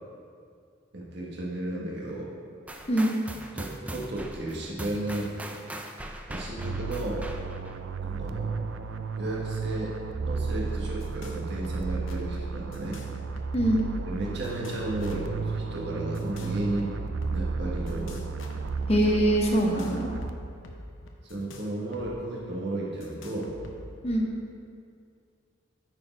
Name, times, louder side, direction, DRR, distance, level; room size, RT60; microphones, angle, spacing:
voice 1, 0.9-2.3 3.5-5.5 6.3-7.2 8.0-8.6 9.2-13.0 14.1-17.0 17.3-18.2 19.0-19.1 21.2-23.5, right 1 dB, 60° right, -4 dB, 1.5 m, -33 dB
sound 1, 2.7-7.8, right 1 dB, 5° right, 0.3 m, -40 dB
sound 2, 6.6-20.7, right 4 dB, 80° right, 0.4 m, -33 dB
sound 3, 10.4-10.5 10.8-11.4 11.6-12.2 12.7-14.1 14.4-15.4 16.1-17.4 17.9-18.9 19.6-22.1 22.4-22.5 23.0-24.1, left 2 dB, 80° left, 0.8 m, -45 dB
voice 2, 13.5-13.8 18.9-20.1 24.0-24.3, right 1 dB, 30° left, -1 dB, 0.9 m, -23 dB
9.5 x 4.6 x 4.6 m, 2.3 s
head